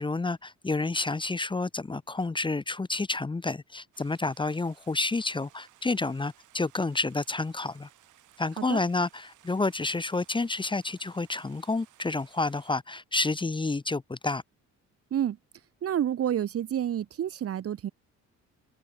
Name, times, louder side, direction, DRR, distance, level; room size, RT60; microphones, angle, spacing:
voice 1, 0.0-7.9 8.4-14.4, left 3 dB, 15° left, 0.8 m, -29 dB
Stream, 3.9-12.7, right 13 dB, 80° right, 5.5 m, -60 dB
voice 2, 15.8-17.9, right 10 dB, 50° right, 0.9 m, -29 dB
cardioid pair, 90°, 30 cm